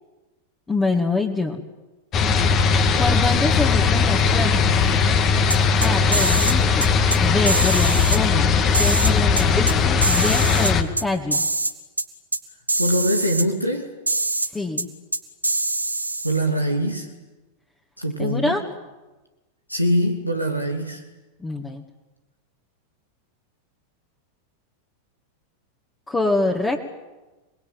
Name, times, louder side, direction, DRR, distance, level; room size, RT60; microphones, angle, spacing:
voice 1, 0.7-1.6 3.0-4.8 5.8-6.9 7.2-8.5 8.8-11.5 14.5-14.9 18.2-18.6 21.4-21.8 26.1-26.8, left 3 dB, 10° left, 1 dB, 2.3 m, -25 dB
sound 1, 2.1-10.8, left 5 dB, 30° left, 2.2 m, -19 dB
sound 2, 5.5-6.5 6.8-7.2 7.5-8.2 8.7-9.7 10.0-11.0 11.3-11.7 12.0-12.1 12.3-12.4 12.7-13.4 14.1-14.5 14.8-14.9 15.1-16.4, right 2 dB, 85° right, 2.2 m, -24 dB
voice 2, 12.8-13.9 16.2-17.1 18.0-18.5 19.7-21.0, equal, 90° left, 4 dB, 2.7 m, -23 dB
28.5 x 20.5 x 9.3 m, 1.1 s
figure-of-eight pair, 90°, 0 cm